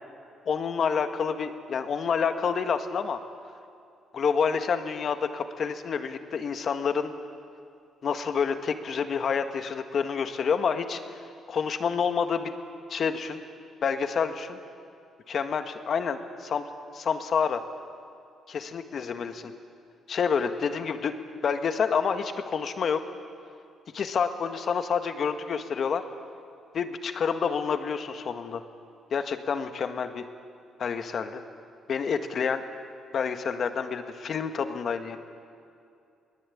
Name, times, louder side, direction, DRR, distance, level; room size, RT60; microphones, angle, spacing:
voice 1, 0.5-3.2 4.1-7.1 8.0-11.2 11.5-12.5 12.9-13.4 13.8-14.6 15.3-16.7 16.9-17.6 18.5-19.5 20.1-21.1 21.4-23.0 23.9-26.0 26.7-28.6 29.1-30.3 30.8-31.4 31.9-32.6 33.1-35.2, left 6 dB, 55° left, 8 dB, 1.7 m, -28 dB
23.0 x 19.5 x 8.6 m, 2.5 s
cardioid pair, 90°, 0 cm